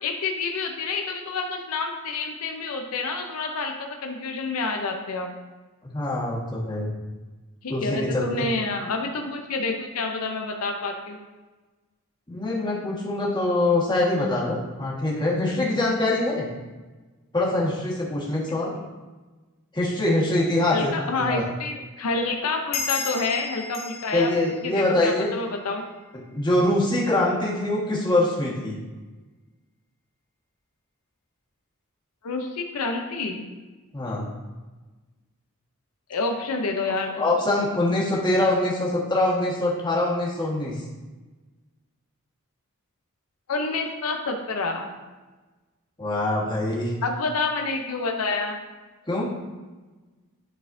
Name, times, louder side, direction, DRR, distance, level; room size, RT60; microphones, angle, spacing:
voice 1, 0.0-5.3 7.6-11.2 18.5-18.6 20.7-24.3 24.6-25.8 32.2-33.5 36.1-37.3 43.5-44.9 47.0-48.6, left 3 dB, 80° left, 4 dB, 0.6 m, -28 dB
voice 2, 5.8-6.9 7.7-8.2 12.3-16.5 17.3-18.7 19.7-21.4 24.1-25.3 26.3-28.8 33.9-34.3 37.2-40.8 46.0-46.9 49.1-49.3, left 2 dB, 20° left, -5 dB, 1.5 m, -24 dB
sound 1, 22.7-25.8, left 5 dB, 45° left, 0.7 m, -34 dB
10.0 x 4.1 x 2.6 m, 1.2 s
head